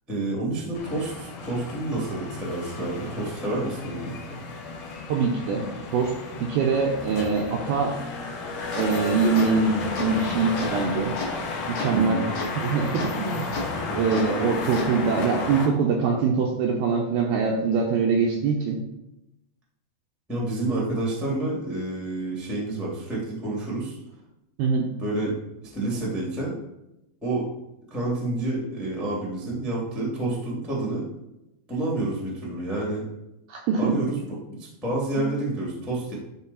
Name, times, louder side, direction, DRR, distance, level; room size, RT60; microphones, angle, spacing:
voice 1, 0.1-4.4 11.9-12.3 20.3-24.0 25.0-26.5 27.2-27.4 27.9-31.1 31.7-33.0 33.8-34.2 34.5-36.1, right 2 dB, ahead, -4 dB, 0.9 m, -29 dB
sound 1, 0.7-15.7, left 3 dB, 65° left, 2.2 m, -33 dB
voice 2, 5.1-5.7 5.9-6.1 6.4-7.9 8.7-11.1 11.7-12.2 12.6-13.5 13.9-18.8 24.6-24.9 33.5-34.0 35.2-35.3, right 5 dB, 75° right, 0 dB, 2.3 m, -23 dB
sound 2, 8.6-14.9, left 2 dB, 50° left, 2.4 m, -36 dB
12.0 x 4.6 x 4.2 m, 0.91 s
omnidirectional pair, 5.3 m